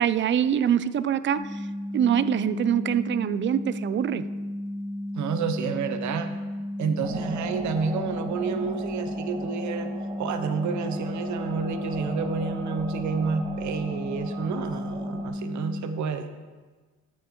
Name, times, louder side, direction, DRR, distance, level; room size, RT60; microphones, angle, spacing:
voice 1, 0.0-1.4 1.9-4.3, right 9 dB, 40° right, 15 dB, 0.4 m, -24 dB
sound 1, 1.4-15.8, left 1 dB, 45° left, 2.3 m, -34 dB
voice 2, 5.1-6.3 6.8-9.9 10.2-16.3, right 5 dB, 70° right, 9 dB, 0.7 m, -30 dB
sound 2, 7.0-15.3, right 2 dB, 20° right, 1.2 m, -39 dB
13.0 x 5.7 x 3.1 m, 1.4 s
cardioid pair, 90°, 30 cm